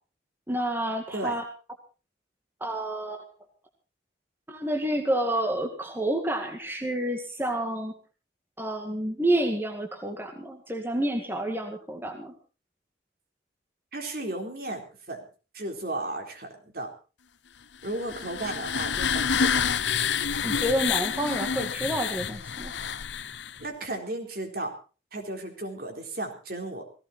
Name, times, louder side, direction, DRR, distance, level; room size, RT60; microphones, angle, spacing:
voice 1, 0.5-1.4 2.6-3.2 4.5-7.9 8.6-12.3 20.4-22.7, right 1 dB, 10° right, 2 dB, 2.0 m, -29 dB
voice 2, 13.9-15.2 15.5-16.9 17.8-19.6 23.6-24.7 25.1-26.8, right 2 dB, 55° right, 3 dB, 4.0 m, -34 dB
sound 1, 17.8-23.6, left 7 dB, 75° left, 0.8 m, -28 dB
17.5 x 16.5 x 4.4 m, 0.36 s
head